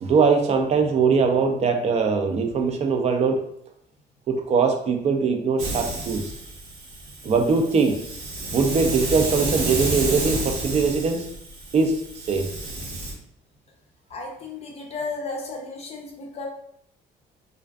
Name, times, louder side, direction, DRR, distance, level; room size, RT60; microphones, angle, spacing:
voice 1, 0.0-3.4 4.3-6.3 7.2-8.0 8.5-11.3 11.7-12.5, right 5 dB, 40° right, 5 dB, 0.4 m, -21 dB
Hiss, 5.6-13.1, right 2 dB, 75° right, 0.8 m, -30 dB
voice 2, 14.1-16.5, left 3 dB, 40° left, 0 dB, 0.5 m, -34 dB
2.4 x 2.3 x 2.2 m, 0.72 s
cardioid pair, 110°, 17 cm